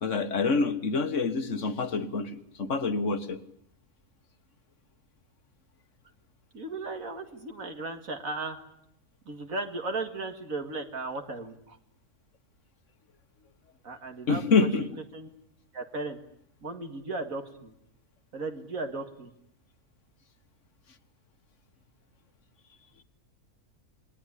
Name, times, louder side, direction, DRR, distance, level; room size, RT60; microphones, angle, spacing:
voice 1, 0.0-3.4 14.3-14.9, left 4 dB, 55° left, 10 dB, 1.8 m, -26 dB
voice 2, 6.5-8.6 9.3-11.8 13.8-14.9 15.1-15.3 15.7-16.2 16.6-17.7 18.3-19.3, right 3 dB, 65° right, 6 dB, 2.5 m, -36 dB
27.5 x 20.5 x 10.0 m, 0.75 s
omnidirectional pair, 1.5 m